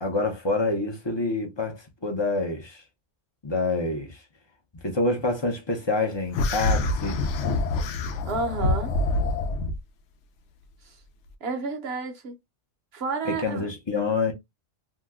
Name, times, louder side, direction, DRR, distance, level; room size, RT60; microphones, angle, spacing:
voice 1, 0.0-2.8 3.4-4.2 4.8-7.2 13.2-14.3, left 3 dB, 30° left, 0.6 m, -27 dB
sound 1, 6.3-9.8, left 2 dB, 75° left, 0.9 m, -26 dB
voice 2, 8.2-8.9 10.8-10.9 11.4-12.4 12.9-13.7, right 4 dB, 60° right, 1.0 m, -30 dB
2.8 x 2.1 x 3.4 m
omnidirectional pair, 1.3 m